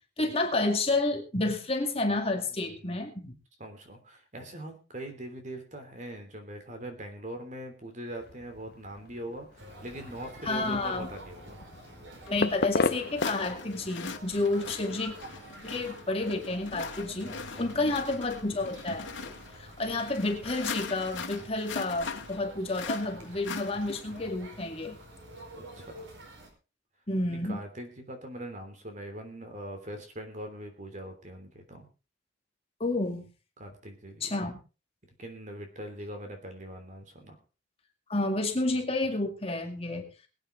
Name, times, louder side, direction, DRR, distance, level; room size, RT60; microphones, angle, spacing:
voice 1, 0.2-3.3 10.4-11.1 12.3-15.1 15.6-19.1 19.6-25.0 27.1-27.6 32.8-33.3 34.2-34.5 38.1-40.1, left 2 dB, 30° left, 3 dB, 2.2 m, -30 dB
voice 2, 2.5-3.0 3.6-11.6 17.2-18.0 19.9-20.0 25.6-25.9 27.3-31.9 33.6-34.5 35.2-37.4, right 1 dB, 40° right, 5 dB, 3.3 m, -42 dB
sound 1, 8.2-13.7, left 3 dB, 55° left, 0.7 m, -35 dB
sound 2, 9.6-26.5, right 1 dB, 90° right, 4.8 m, -49 dB
sound 3, 12.3-12.4 13.2-24.2, left 5 dB, 90° left, 1.9 m, -40 dB
22.0 x 8.9 x 4.0 m, 0.33 s
head